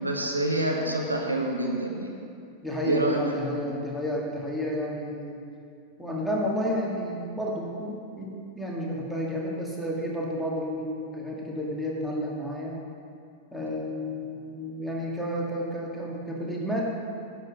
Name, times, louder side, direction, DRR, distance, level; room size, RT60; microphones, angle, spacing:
voice 1, 0.0-2.1 2.8-3.7, right 1 dB, 85° right, 1 dB, 1.1 m, -27 dB
voice 2, 2.6-5.4 6.0-12.7 13.5-16.8, equal, ahead, -4 dB, 2.0 m, -31 dB
10.5 x 7.5 x 5.4 m, 2.4 s
figure-of-eight pair, 90°, 0 cm